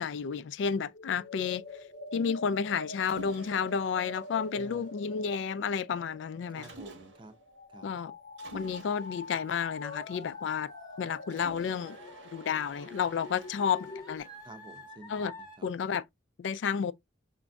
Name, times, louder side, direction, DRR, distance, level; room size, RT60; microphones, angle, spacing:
voice 1, 0.0-1.7 2.1-6.7 7.8-8.1 8.5-10.7 11.0-12.0 12.3-14.3 15.1-15.3 15.6-16.0 16.4-16.9, left 6 dB, 75° left, 0.3 m, -31 dB
sound 1, 0.9-14.2, left 2 dB, 60° left, 0.7 m, -45 dB
Mechanisms, 3.0-5.4 6.6-7.5 8.4-10.7 11.3-15.5, right 3 dB, 75° right, 1.0 m, -52 dB
voice 2, 6.5-7.4 7.7-8.0 14.4-15.7, right 2 dB, 25° right, 0.6 m, -51 dB
sound 2, 9.8-15.6, left 2 dB, 20° left, 1.0 m, -50 dB
5.0 x 2.6 x 2.3 m
head